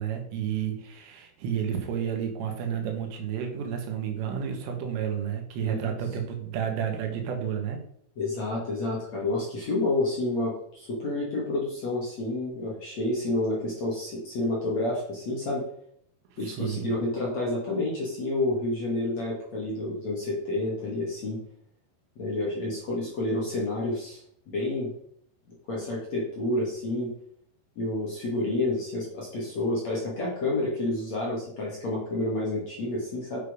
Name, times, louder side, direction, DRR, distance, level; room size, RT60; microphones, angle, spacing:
voice 1, 0.0-7.8 16.3-16.9, right 8 dB, 75° right, 3 dB, 4.2 m, -31 dB
voice 2, 5.6-6.0 8.2-15.6 16.4-21.4 22.2-24.2 24.5-24.9 25.7-27.1 27.8-33.4, left 2 dB, 45° left, -4 dB, 2.5 m, -29 dB
9.1 x 7.1 x 5.2 m, 0.67 s
omnidirectional pair, 5.8 m